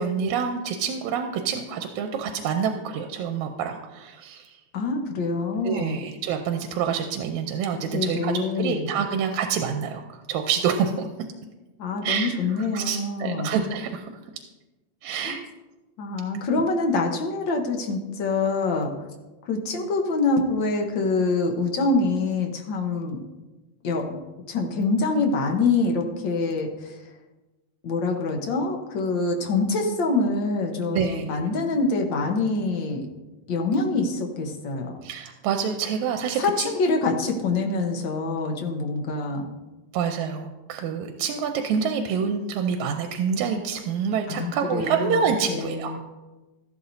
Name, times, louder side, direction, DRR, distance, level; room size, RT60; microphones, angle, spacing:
voice 1, 0.0-4.6 5.6-10.0 10.3-11.1 12.0-12.3 12.7-14.1 15.0-15.4 16.5-16.6 30.9-31.5 35.0-36.7 39.9-46.0, right 7 dB, 85° right, 5 dB, 2.1 m, -27 dB
voice 2, 4.7-6.0 7.9-8.9 11.8-13.6 15.2-15.4 16.0-18.9 19.4-23.2 23.8-24.1 24.5-27.0 27.8-33.1 33.5-35.0 36.3-39.5 44.3-46.0, left 3 dB, 55° left, 2 dB, 1.4 m, -25 dB
14.0 x 12.0 x 2.7 m, 1.1 s
omnidirectional pair, 3.3 m